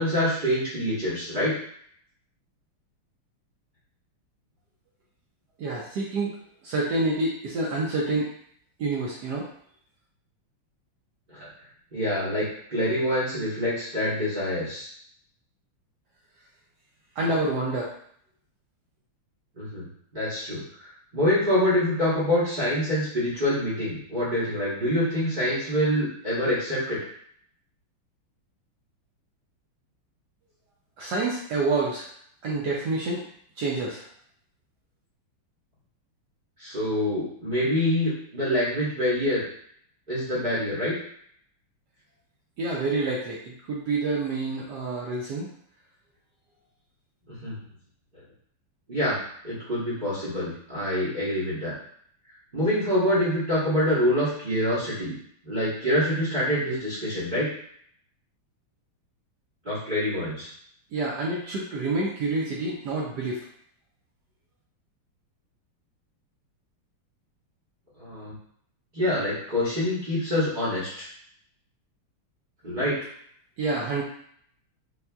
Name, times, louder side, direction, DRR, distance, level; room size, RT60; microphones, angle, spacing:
voice 1, 0.0-1.5 11.3-11.5 11.9-14.9 19.6-19.9 20.1-27.0 36.6-39.5 40.1-40.9 47.3-47.6 48.9-49.2 49.4-51.7 52.5-55.1 55.4-57.5 59.6-60.5 68.0-68.3 68.9-71.1 72.6-72.9, left 1 dB, 45° right, -9 dB, 0.6 m, -26 dB
voice 2, 5.6-6.3 6.6-8.3 8.8-9.5 17.2-17.9 31.0-32.1 32.4-33.2 33.6-34.0 42.6-45.5 60.9-63.4 73.6-74.0, right 2 dB, 75° right, -3 dB, 0.9 m, -27 dB
4.1 x 2.4 x 2.2 m, 0.64 s
omnidirectional pair, 2.4 m